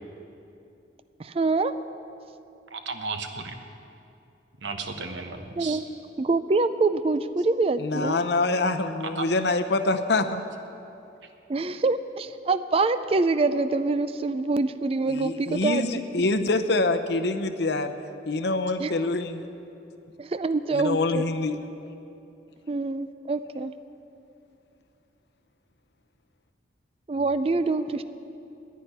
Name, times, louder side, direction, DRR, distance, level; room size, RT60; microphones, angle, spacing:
voice 1, 1.2-1.7 5.6-5.8 6.2-8.2 11.5-15.9 18.8-18.9 20.2-21.2 22.7-23.7 27.1-28.0, right 3 dB, 30° right, 12 dB, 0.4 m, -25 dB
voice 2, 2.7-3.5 4.6-5.8 9.2-9.3, right 4 dB, 85° right, 6 dB, 1.2 m, -34 dB
voice 3, 7.8-10.4 15.1-17.9 18.3-19.5 20.7-21.6, left 2 dB, 65° left, 8 dB, 0.7 m, -25 dB
10.0 x 9.5 x 10.0 m, 2.8 s
head